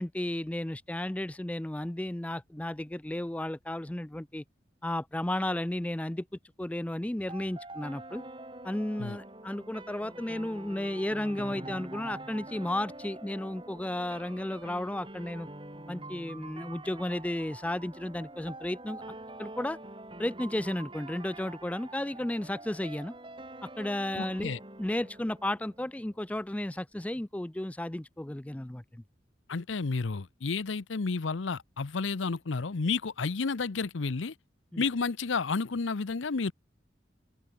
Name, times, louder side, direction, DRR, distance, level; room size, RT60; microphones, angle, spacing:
voice 1, 0.0-4.4 4.8-6.3 6.6-8.2 8.6-15.5 15.9-19.8 20.2-23.1 23.6-29.0 34.7-34.8, left 1 dB, 5° left, 0.3 m, -33 dB
sound 1, 7.3-26.2, right 2 dB, 25° right, 3.1 m, -46 dB
voice 2, 24.2-24.6 29.5-34.3 34.8-36.5, left 4 dB, 90° left, 0.7 m, -31 dB
open air
head